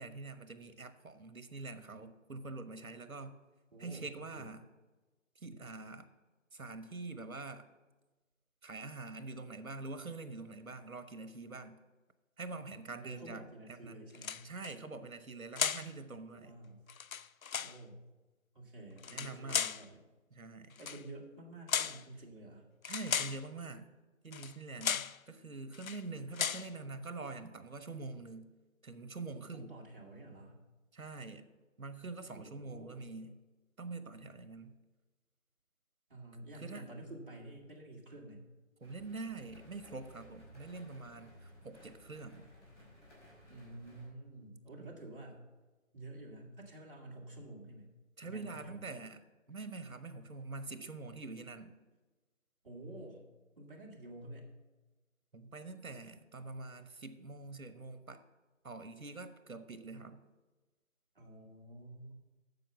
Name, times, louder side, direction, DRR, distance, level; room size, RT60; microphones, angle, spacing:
voice 1, 0.0-3.4 3.8-4.7 5.4-6.1 6.5-7.7 8.6-11.8 12.4-13.5 13.8-14.0 14.4-16.5 19.1-19.7 20.3-20.8 22.8-23.9 24.2-28.5 28.8-29.7 30.9-31.5 31.8-33.4 33.8-34.7 36.6-36.9 38.8-42.5 44.8-44.9 48.2-49.2 49.5-51.7 55.3-58.2 58.6-60.2, right 3 dB, 90° right, 11 dB, 1.2 m, -45 dB
voice 2, 3.7-4.5 13.0-14.5 16.4-16.8 17.5-18.0 18.5-20.0 20.8-22.7 29.5-30.6 32.2-33.1 36.1-38.4 43.5-45.4 45.9-47.9 48.2-48.8 52.6-53.2 53.6-54.5 61.1-62.1, right 1 dB, 40° right, -2 dB, 2.3 m, -50 dB
sound 1, 14.1-14.7 15.6-15.9 16.9-17.8 19.0-19.8 20.8-21.0 21.7-22.0 22.8-23.4 24.3-24.5 24.8-25.2 25.7-26.0 26.3-26.7, left 7 dB, 85° left, 0.5 m, -35 dB
sound 2, 38.8-44.1, equal, 10° left, 2.4 m, -58 dB
9.3 x 6.8 x 7.0 m, 1.2 s
figure-of-eight pair, 170°, 41 cm